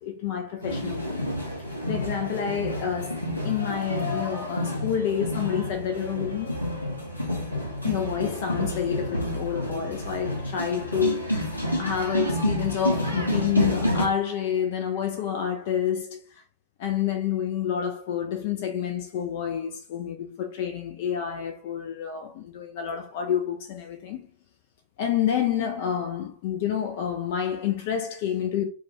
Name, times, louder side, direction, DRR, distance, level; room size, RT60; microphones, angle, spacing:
voice 1, 0.0-1.2 1.9-6.6 7.8-11.5 11.8-16.4 16.8-24.3 25.0-28.6, left 9 dB, 50° left, 0.3 m, -28 dB
sound 1, 0.6-14.1, equal, 85° left, 0.6 m, -29 dB
2.2 x 2.2 x 2.8 m
figure-of-eight pair, 90°, 0 cm